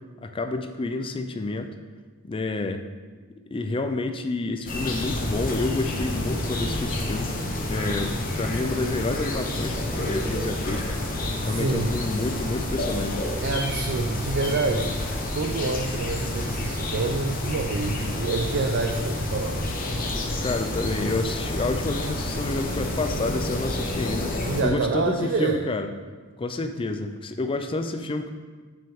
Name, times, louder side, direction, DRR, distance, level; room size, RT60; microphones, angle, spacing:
voice 1, 0.2-1.7 2.2-2.8 3.5-7.3 7.7-11.0 11.4-13.2 20.3-25.9 26.4-28.3, left 2 dB, 25° left, 7 dB, 0.4 m, -29 dB
sound 1, 4.7-24.6, left 1 dB, 40° left, 0.9 m, -29 dB
voice 2, 11.4-11.9 13.4-15.0 15.3-19.6 24.5-25.6, right 3 dB, 55° right, 4 dB, 0.4 m, -27 dB
6.9 x 6.2 x 3.6 m, 1.4 s
head